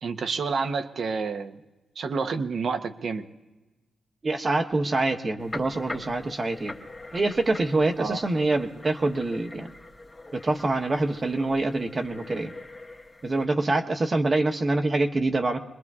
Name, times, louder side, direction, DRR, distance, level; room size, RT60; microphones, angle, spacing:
voice 1, 0.0-1.6 2.0-3.2 8.0-8.2, right 4 dB, 65° right, 7 dB, 0.9 m, -29 dB
voice 2, 4.2-6.7 7.1-9.7 10.3-12.5 13.2-15.6, right 2 dB, 35° right, 4 dB, 1.1 m, -25 dB
sound 1, 5.4-13.5, left 2 dB, 25° left, 1.2 m, -43 dB
26.0 x 21.0 x 2.4 m, 1.1 s
cardioid pair, 90°, 0 cm